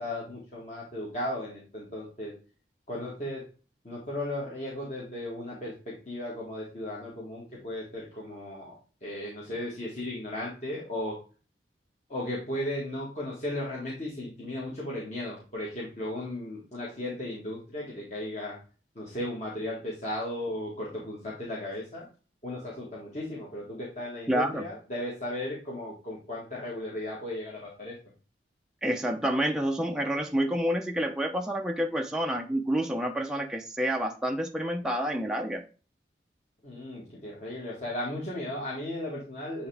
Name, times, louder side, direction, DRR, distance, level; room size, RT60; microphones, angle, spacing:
voice 1, 0.0-2.3 2.9-3.4 3.8-8.7 9.0-11.2 12.1-18.6 19.0-22.1 22.4-28.0 36.6-39.7, left 1 dB, 40° left, -6 dB, 1.8 m, -36 dB
voice 2, 24.3-24.7 28.8-35.6, equal, 5° right, 2 dB, 0.5 m, -28 dB
8.9 x 3.5 x 3.4 m, 0.36 s
head